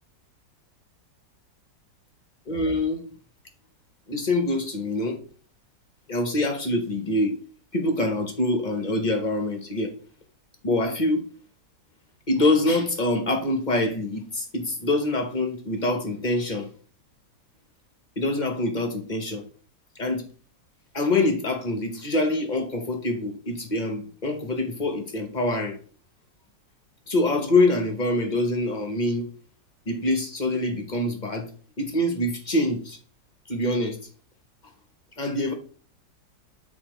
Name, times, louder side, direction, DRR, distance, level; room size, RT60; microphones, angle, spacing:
voice 1, 2.5-3.0 4.1-5.2 6.1-7.3 7.7-9.9 10.6-11.2 12.3-16.7 18.2-19.4 20.0-20.2 20.9-25.8 27.1-29.3 29.9-31.5 31.8-33.0 33.5-34.0 35.2-35.5, left 2 dB, 40° left, 0.7 m, -25 dB
8.6 x 4.2 x 3.0 m
omnidirectional pair, 1.9 m